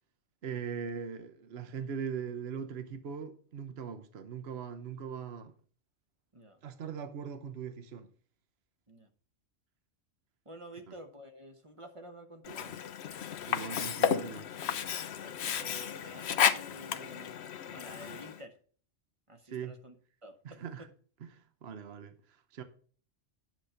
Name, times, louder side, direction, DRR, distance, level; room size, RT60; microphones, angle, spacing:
voice 1, 0.4-5.5 6.6-8.1 13.5-14.5 19.5-19.8 20.4-20.9 21.2-21.3 21.6-22.1 22.5-22.6, right 7 dB, 60° right, 1.1 m, -40 dB
voice 2, 10.4-12.8 15.2-18.6 19.3-20.0 20.2-20.9, right 1 dB, 25° right, 1.0 m, -50 dB
Sink (filling or washing), 12.4-18.4, left 8 dB, 65° left, 0.9 m, -33 dB
9.4 x 6.6 x 4.3 m
omnidirectional pair, 1.3 m